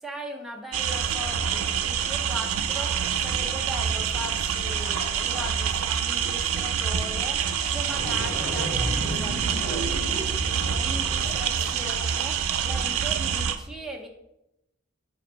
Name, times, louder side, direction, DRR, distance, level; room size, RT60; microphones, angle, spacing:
voice 1, 0.0-14.1, equal, ahead, -1 dB, 0.7 m, -39 dB
sound 1, 0.7-13.6, right 8 dB, 90° right, 0.5 m, -27 dB
sound 2, 0.9-13.4, left 3 dB, 45° left, 0.5 m, -44 dB
sound 3, 7.4-7.5 7.7-11.5, equal, 75° left, 2.0 m, -33 dB
8.7 x 4.4 x 3.1 m, 0.87 s
head